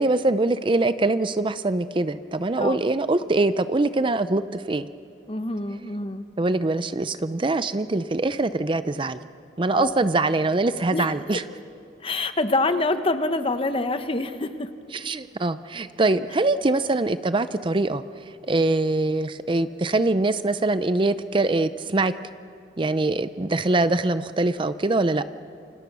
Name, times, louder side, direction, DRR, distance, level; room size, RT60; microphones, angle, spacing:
voice 1, 0.0-4.9 6.4-9.2 9.6-11.4 14.9-18.0 18.5-22.1 22.8-25.2, right 2 dB, 30° right, 13 dB, 0.5 m, -23 dB
voice 2, 5.3-6.3 9.7-10.0 10.9-11.1 12.0-14.7, left 2 dB, 30° left, 9 dB, 1.2 m, -26 dB
28.0 x 26.0 x 6.2 m, 2.3 s
head